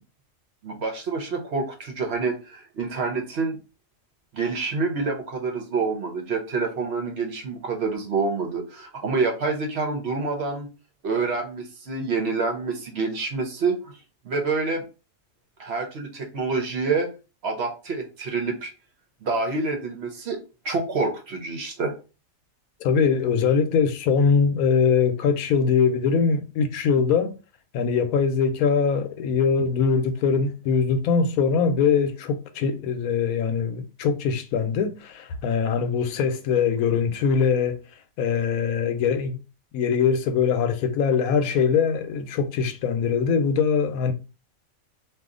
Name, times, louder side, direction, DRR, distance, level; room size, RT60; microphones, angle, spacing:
voice 1, 0.6-3.6 4.3-10.7 11.0-13.9 14.2-14.8 15.6-17.1 17.4-18.7 19.2-20.4 20.6-21.9, right 4 dB, 55° right, 0.8 m, -27 dB
voice 2, 22.8-27.3 27.7-37.8 38.2-39.4 39.7-44.1, left 6 dB, 90° left, 1.0 m, -22 dB
2.7 x 2.3 x 3.6 m
omnidirectional pair, 1.4 m